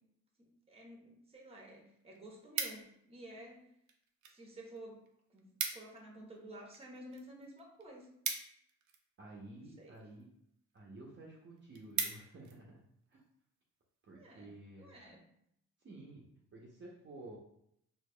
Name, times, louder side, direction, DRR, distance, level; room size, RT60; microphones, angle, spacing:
voice 1, 0.4-3.7 4.3-5.0 5.3-5.4 5.7-8.1 9.4-10.0 14.1-14.5 14.8-15.3, right 1 dB, 20° right, 0 dB, 1.1 m, -52 dB
sound 1, 1.4-1.5 1.8-3.2 3.9-4.4 4.7-4.8 5.1-5.2 5.4-6.0 6.4-9.2 9.9-10.3 10.8-10.9 11.2-11.3 11.6-12.6 13.1-13.3, right 6 dB, 70° right, 0.6 m, -40 dB
voice 2, 9.2-10.4 10.7-12.8 13.1-13.2 14.0-14.9 15.8-17.4, right 2 dB, 40° right, -3 dB, 0.8 m, -52 dB
4.6 x 2.9 x 2.2 m, 0.73 s
cardioid pair, 90°, 30 cm